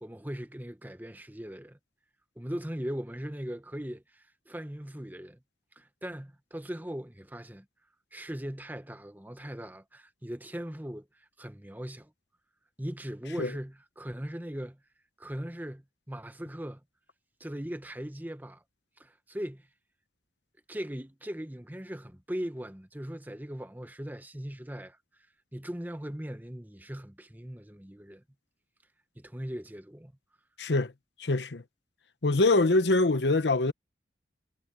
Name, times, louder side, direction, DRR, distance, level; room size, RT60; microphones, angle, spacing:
voice 1, 0.0-1.8 2.4-5.4 5.8-7.6 8.1-12.1 12.8-14.8 15.2-16.8 17.4-18.6 19.0-19.7 20.7-25.0 25.5-28.2 29.2-30.1, equal, 10° right, 1.1 m, -39 dB
voice 2, 30.6-30.9 31.2-31.6 32.2-33.7, left 2 dB, 85° left, 1.0 m, -24 dB
head